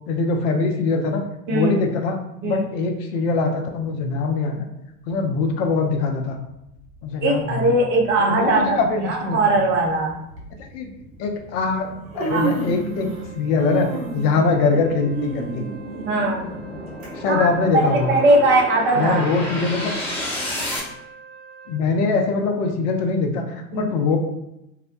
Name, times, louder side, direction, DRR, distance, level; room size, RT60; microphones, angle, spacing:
voice 1, 0.1-1.2 1.5-2.2 2.4-4.6 5.1-6.4 7.0-7.7 8.2-9.4 10.7-10.9 11.2-11.9 12.1-13.1 13.3-15.6 17.1-18.1 19.0-20.0 21.7-24.2, left 4 dB, 45° left, 4 dB, 0.5 m, -22 dB
sound 1, 6.7-20.8, left 1 dB, 10° left, 0.8 m, -34 dB
voice 2, 7.2-8.8 9.0-10.2 12.3-12.5 16.1-16.5 17.3-17.5 17.7-19.2 23.7-23.9, right 2 dB, 25° right, 0 dB, 0.5 m, -19 dB
Human voice, 8.3-8.6 9.6-9.7 10.3-10.5 11.5-11.6 11.9-13.3 13.6-17.1 17.5-17.6 18.4-18.5, right 4 dB, 60° right, 1.1 m, -30 dB
Wind instrument woodwind instrument, 12.6-21.8, right 6 dB, 80° right, 1.0 m, -45 dB
2.8 x 2.0 x 2.5 m, 0.87 s
figure-of-eight pair, 85°, 45 cm